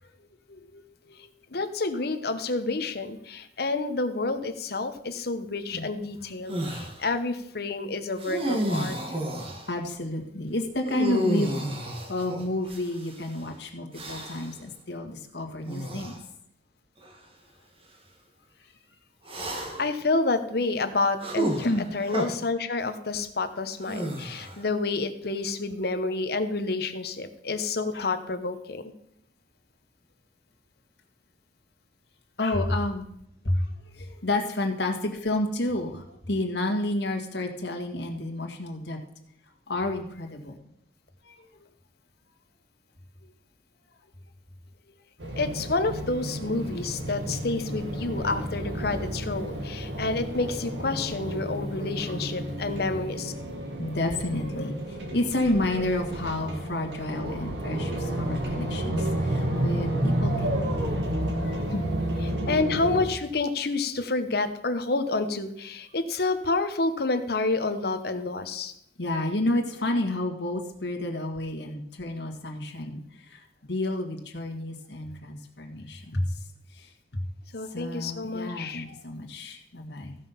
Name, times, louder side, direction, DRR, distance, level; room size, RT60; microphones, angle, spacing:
voice 1, 0.5-0.8 5.7-5.8 9.7-11.7 12.1-16.1 21.6-21.9 27.9-28.1 32.4-33.1 33.4-39.0 39.7-40.6 41.2-41.5 53.8-61.1 61.4-61.9 69.0-76.4 76.7-77.3 77.6-80.2, left 1 dB, 75° left, 3 dB, 1.9 m, -30 dB
voice 2, 1.2-9.1 19.5-28.8 45.4-53.3 54.5-54.7 55.7-55.8 62.5-68.7 77.5-78.8, left 3 dB, 60° left, 9 dB, 1.1 m, -29 dB
sound 1, 6.5-7.0 8.2-9.7 10.8-13.2 13.9-14.6 15.7-16.2 17.0-17.1 19.3-20.0 21.2-22.3 23.8-24.7, equal, 30° right, 1.6 m, -31 dB
sound 2, 45.2-63.0, right 1 dB, 85° right, 2.1 m, -31 dB
15.0 x 5.6 x 5.7 m, 0.74 s
head